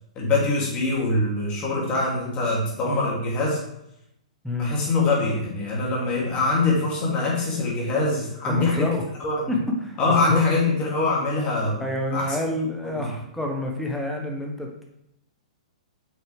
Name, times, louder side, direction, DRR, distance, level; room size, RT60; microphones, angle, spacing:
voice 1, 0.2-3.6 4.6-8.9 9.2-9.3 10.0-11.8 12.1-12.3 12.8-13.1, left 3 dB, 30° left, -4 dB, 2.8 m, -23 dB
voice 2, 8.5-9.0 9.5-10.5 11.8-14.8, left 1 dB, ahead, 0 dB, 1.3 m, -28 dB
8.1 x 6.0 x 3.5 m, 0.79 s
figure-of-eight pair, 110°, 4 cm